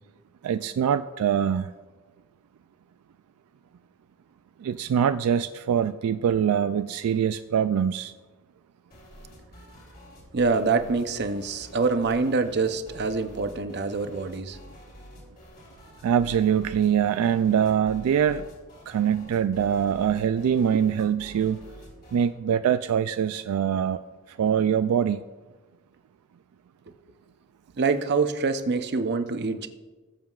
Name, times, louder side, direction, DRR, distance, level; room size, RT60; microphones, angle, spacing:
voice 1, 0.4-1.7 4.6-8.1 16.0-18.5 18.9-21.6 22.1-24.0 24.3-25.2, right 8 dB, 80° right, 11 dB, 0.3 m, -23 dB
sound 1, 8.9-22.3, equal, 45° left, 3.2 m, -48 dB
voice 2, 10.3-14.6 27.8-29.7, right 4 dB, 50° right, 9 dB, 0.7 m, -25 dB
19.5 x 7.4 x 2.4 m, 1.3 s
head